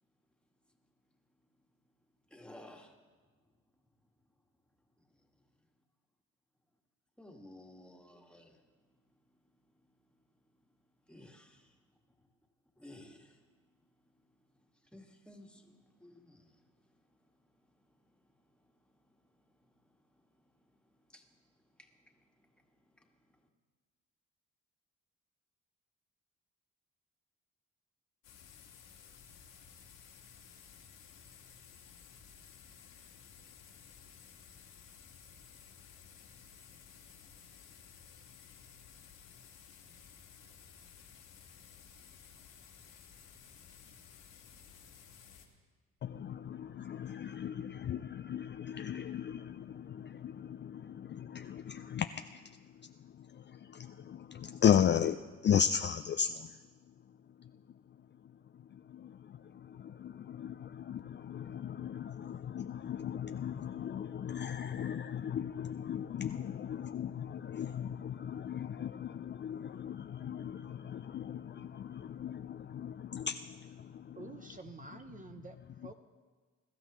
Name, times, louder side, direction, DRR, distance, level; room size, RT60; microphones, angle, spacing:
voice 1, 2.3-2.9 7.2-8.6 11.1-11.8 12.8-13.4 14.9-16.7 17.1-17.2 19.6-19.7 20.1-20.2 21.1-21.3 21.8-22.7 22.9-23.4, left 1 dB, 5° left, 1.7 m, -55 dB
sound 1, 28.2-45.5, left 7 dB, 85° left, 2.0 m, -56 dB
voice 2, 46.0-56.9 57.4-58.0 58.2-74.3, left 8 dB, 40° left, 0.4 m, -36 dB
voice 3, 74.2-75.9, right 3 dB, 25° right, 0.6 m, -49 dB
22.0 x 13.0 x 3.0 m
cardioid pair, 90°, 30 cm